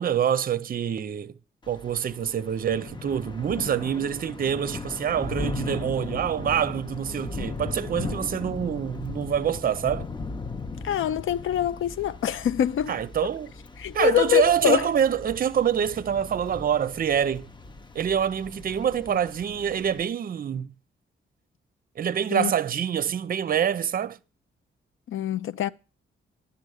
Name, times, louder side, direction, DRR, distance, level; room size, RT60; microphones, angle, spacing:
voice 1, 0.0-1.3 1.7-10.1 12.9-13.5 13.9-17.5 17.9-20.7 22.0-24.2, right 8 dB, 45° right, 0.5 m, -26 dB
Thunder / Rain, 1.6-20.0, left 4 dB, 20° left, 0.7 m, -38 dB
voice 2, 10.8-12.9 13.8-14.9 19.1-19.2 22.3-22.5 25.1-25.7, left 10 dB, 80° left, 0.7 m, -24 dB
11.0 x 7.1 x 6.4 m
cardioid pair, 120°, 20 cm